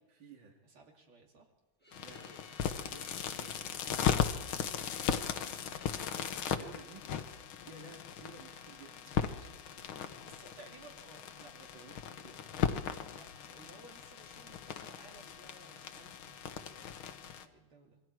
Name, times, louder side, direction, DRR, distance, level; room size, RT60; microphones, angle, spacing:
voice 1, 0.1-0.6 1.9-3.7 4.0-5.0 5.3-5.9 6.1-7.1 7.6-9.1 11.5-12.8, right 2 dB, 65° right, 0 dB, 3.1 m, -55 dB
voice 2, 0.6-1.5 2.7-3.1 9.2-12.1 13.1-18.0, right 3 dB, 80° right, 0 dB, 3.5 m, -58 dB
Bowed string instrument, 1.8-6.3, left 3 dB, 5° left, 1.3 m, -58 dB
sound 1, 1.9-17.5, left 8 dB, 80° left, 1.9 m, -37 dB
27.0 x 23.0 x 4.7 m, 1.0 s
omnidirectional pair, 2.2 m